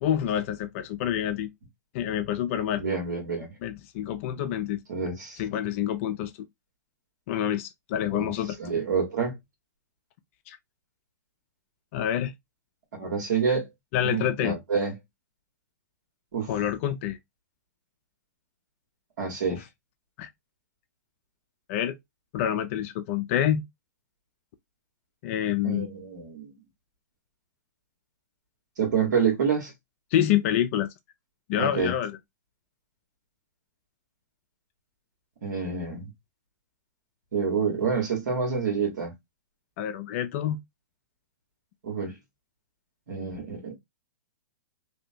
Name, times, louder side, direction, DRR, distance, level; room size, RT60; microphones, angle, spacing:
voice 1, 0.0-1.5 1.9-2.8 3.6-4.8 5.4-6.3 7.3-8.6 10.5-10.6 11.9-12.3 13.9-14.6 16.5-17.2 19.5-19.6 20.2-20.3 21.7-22.0 22.3-23.6 25.2-25.9 30.1-30.9 31.5-32.2 39.8-40.6, left 10 dB, 45° left, 0.4 m, -27 dB
voice 2, 2.8-3.5 4.9-5.4 8.1-8.3 8.6-9.3 13.0-13.7 14.0-14.9 16.3-16.5 19.2-19.6 25.6-26.5 28.8-29.7 31.5-31.9 35.4-36.1 37.3-39.1 41.8-42.1 43.1-43.8, right 6 dB, 75° right, 1.4 m, -27 dB
2.7 x 2.1 x 2.7 m
hypercardioid pair, 130°, 10 cm